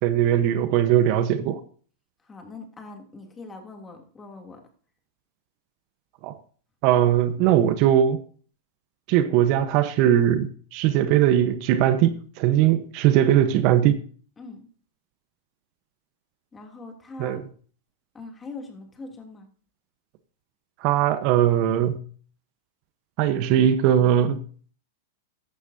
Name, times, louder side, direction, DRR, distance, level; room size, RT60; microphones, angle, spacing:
voice 1, 0.0-1.6 6.2-6.4 6.8-8.2 9.1-14.0 17.2-17.4 20.8-22.0 23.2-24.4, right 11 dB, 50° right, 1.0 m, -20 dB
voice 2, 2.2-4.6 14.4-14.7 16.5-17.4 18.1-19.5, left 3 dB, 15° left, 2.9 m, -42 dB
14.5 x 11.5 x 2.8 m
hypercardioid pair, 115°, 0 cm